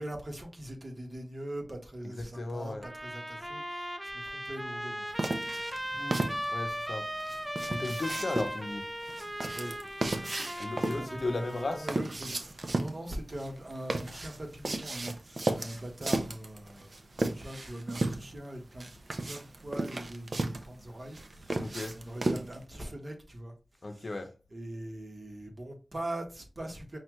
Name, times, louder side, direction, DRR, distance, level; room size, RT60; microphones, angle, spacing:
voice 1, 0.0-5.4 9.5-9.8 10.2-18.9 19.2-23.5 23.8-24.1 24.5-27.0, right 1 dB, 45° right, 1.5 m, -42 dB
voice 2, 2.0-2.9 5.9-6.2 6.5-7.1 7.7-8.9 10.4-11.9 21.6-22.0 23.8-24.3, left 2 dB, 65° left, 0.7 m, -36 dB
Trumpet, 2.8-12.0, equal, 5° right, 0.7 m, -38 dB
sound 1, 5.2-22.6, right 2 dB, 60° right, 0.6 m, -35 dB
5.5 x 2.5 x 3.1 m
wide cardioid pair, 50°, 0 cm